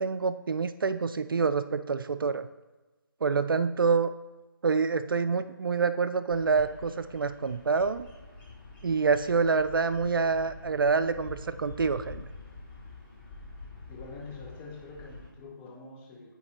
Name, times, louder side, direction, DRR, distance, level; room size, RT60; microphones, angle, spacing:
voice 1, 0.0-2.5 3.2-4.1 4.6-8.0 8.8-12.2, right 5 dB, 70° right, 12 dB, 0.4 m, -27 dB
Bird vocalization bird call bird song, 6.3-15.3, left 3 dB, 30° left, 2.0 m, -47 dB
voice 2, 13.9-16.3, left 3 dB, 10° left, -3 dB, 0.7 m, -45 dB
9.0 x 3.3 x 4.1 m, 1.2 s
figure-of-eight pair, 165°, 12 cm